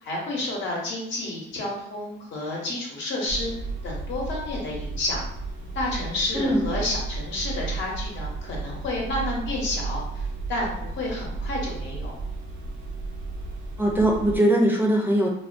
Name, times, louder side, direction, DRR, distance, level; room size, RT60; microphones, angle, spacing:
voice 1, 0.0-3.5 3.8-5.2 5.7-12.1, left 2 dB, 70° left, -3 dB, 0.9 m, -30 dB
sound 1, 3.3-14.4, right 3 dB, 90° right, 0.7 m, -33 dB
voice 2, 6.3-6.7 13.8-15.3, right 1 dB, 10° right, -2 dB, 0.5 m, -21 dB
2.3 x 2.2 x 2.5 m, 0.75 s
cardioid pair, 90°, 20 cm